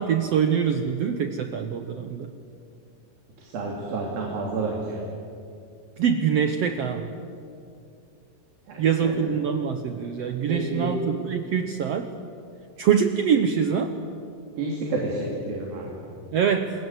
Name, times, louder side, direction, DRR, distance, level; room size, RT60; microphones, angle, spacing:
voice 1, 0.0-2.3 6.0-7.1 8.8-12.1 12.8-13.9 16.3-16.7, right 7 dB, 70° right, 8 dB, 1.5 m, -24 dB
voice 2, 3.4-5.0 8.7-9.2 10.5-11.0 14.6-16.0, right 3 dB, 90° right, -1 dB, 4.7 m, -30 dB
28.0 x 21.5 x 8.2 m, 2.5 s
omnidirectional pair, 4.0 m